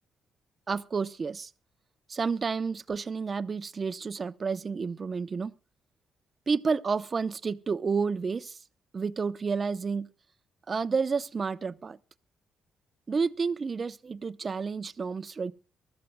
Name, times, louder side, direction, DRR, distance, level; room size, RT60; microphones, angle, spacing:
voice 1, 0.7-1.5 2.1-5.5 6.5-8.6 8.9-10.1 10.7-12.0 13.1-15.5, right 5 dB, 40° right, 0.8 m, -30 dB
24.0 x 13.5 x 2.2 m
supercardioid pair, 60°, 0 cm